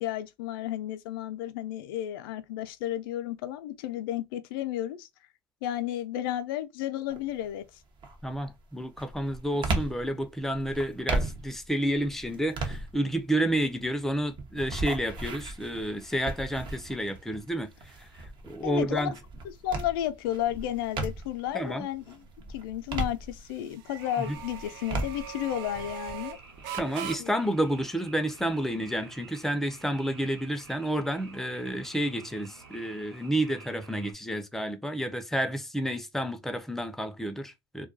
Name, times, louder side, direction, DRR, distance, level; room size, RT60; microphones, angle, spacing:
voice 1, 0.0-5.1 5.6-7.6 18.6-19.1 19.6-22.2 22.5-26.4 27.2-27.3, left 12 dB, 80° left, 0.4 m, -32 dB
sound 1, 7.1-7.5 8.0-21.5 22.0-23.8 24.2-26.8, right 2 dB, 40° right, 0.7 m, -36 dB
voice 2, 8.2-18.1 18.4-19.2 21.5-21.9 24.2-24.4 26.7-37.9, right 1 dB, 5° left, 0.5 m, -30 dB
sound 2, 16.0-33.1, right 9 dB, 75° right, 0.5 m, -46 dB
Frog, 24.0-34.1, right 4 dB, 90° right, 1.2 m, -52 dB
2.2 x 2.2 x 2.5 m
hypercardioid pair, 90°, 12 cm